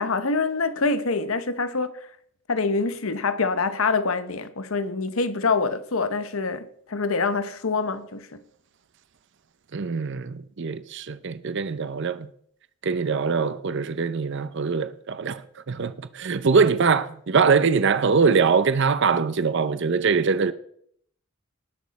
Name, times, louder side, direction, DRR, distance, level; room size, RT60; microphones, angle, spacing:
voice 1, 0.0-1.9 2.5-8.4, left 4 dB, 90° left, 1.0 m, -25 dB
voice 2, 9.7-12.3 12.8-20.5, right 5 dB, 60° right, 0.6 m, -23 dB
19.0 x 6.5 x 4.1 m
head